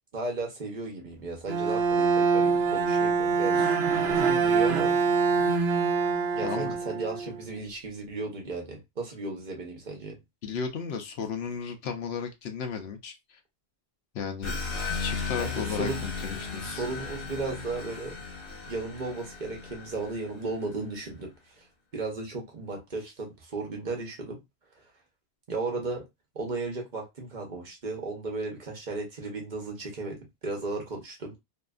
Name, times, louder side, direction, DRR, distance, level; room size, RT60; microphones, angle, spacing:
voice 1, 0.1-5.0 6.3-10.2 15.4-16.0 16.7-18.1 18.7-21.3 21.6-21.7 21.9-24.4 24.8-24.9 25.5-26.0 26.3-31.3, right 3 dB, 50° right, 0.9 m, -35 dB
Bowed string instrument, 1.5-7.4, right 5 dB, 80° right, 0.8 m, -24 dB
voice 2, 6.4-6.7 10.4-13.4 14.1-14.6 15.0-16.8, left 6 dB, 80° left, 0.9 m, -34 dB
sound 1, 14.4-20.7, left 4 dB, 65° left, 1.1 m, -36 dB
2.8 x 2.4 x 2.3 m
omnidirectional pair, 1.1 m